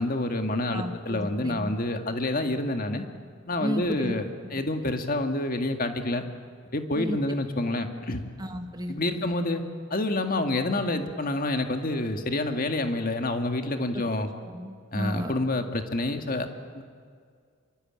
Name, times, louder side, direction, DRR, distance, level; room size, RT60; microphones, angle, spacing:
voice 1, 0.0-3.1 3.5-6.2 6.7-8.2 8.9-9.6 9.9-14.3 14.9-16.5 16.7-16.8, left 2 dB, 45° left, 6 dB, 2.0 m, -28 dB
voice 2, 0.7-1.7 3.6-4.1 7.0-7.2 8.4-9.3 14.4-15.3, equal, 20° right, 5 dB, 1.8 m, -33 dB
25.5 x 23.5 x 8.9 m, 2.1 s
head